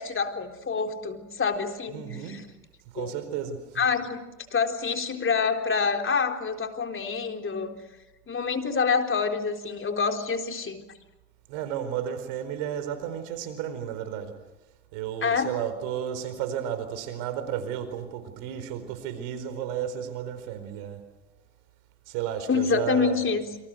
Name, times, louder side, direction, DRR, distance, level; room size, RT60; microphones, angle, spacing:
voice 1, 0.0-2.4 3.0-3.1 3.8-4.2 4.5-7.8 8.3-10.8 15.2-15.5 22.5-23.4, left 5 dB, 35° left, 6 dB, 4.0 m, -27 dB
voice 2, 1.9-2.4 2.9-3.8 11.5-14.3 14.9-21.0 22.1-23.2, right 9 dB, 80° right, 11 dB, 4.6 m, -33 dB
28.0 x 27.0 x 6.4 m, 0.98 s
supercardioid pair, 75°, 36 cm